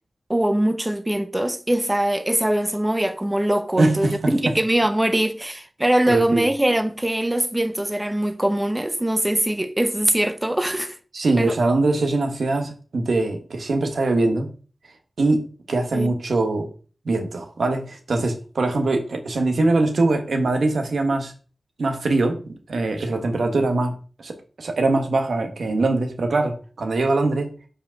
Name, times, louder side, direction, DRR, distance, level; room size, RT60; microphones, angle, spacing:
voice 1, 0.3-11.0 11.4-11.6 15.9-16.1, right 1 dB, 15° right, 0.8 m, -22 dB
voice 2, 3.8-4.6 6.1-6.5 11.1-14.5 15.2-16.7 17.0-21.3 21.8-27.5, right 2 dB, 80° right, 1.4 m, -22 dB
5.1 x 5.0 x 6.4 m
wide cardioid pair, 70°, 0 cm